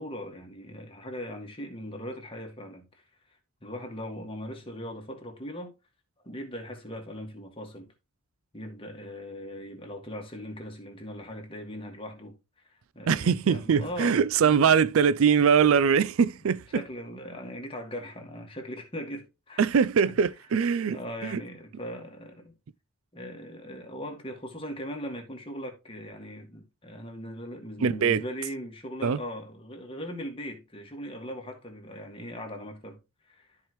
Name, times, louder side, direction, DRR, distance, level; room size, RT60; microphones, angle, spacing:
voice 1, 0.0-3.0 3.6-5.8 6.2-7.9 8.5-14.7 16.5-19.6 20.1-20.2 20.9-22.5 23.1-33.0 33.3-33.5, equal, 25° left, 1.9 m, -39 dB
voice 2, 13.1-16.8 19.6-21.4 27.8-28.2 29.0-29.2, right 6 dB, 65° right, 0.4 m, -22 dB
13.5 x 4.8 x 3.1 m
head